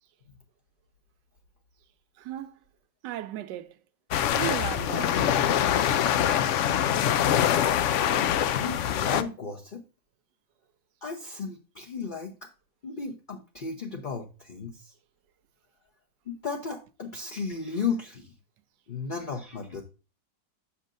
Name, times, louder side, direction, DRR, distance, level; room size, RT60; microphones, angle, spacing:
voice 1, 2.2-2.6 3.0-3.8 4.4-5.4, right 13 dB, 80° right, 1.3 m, -36 dB
sound 1, 4.1-9.2, left 10 dB, 85° left, 0.6 m, -24 dB
voice 2, 8.1-9.8 11.0-12.5 12.8-14.9 16.3-18.3 18.9-19.8, left 5 dB, 40° left, 0.8 m, -34 dB
8.3 x 6.5 x 2.5 m
omnidirectional pair, 1.9 m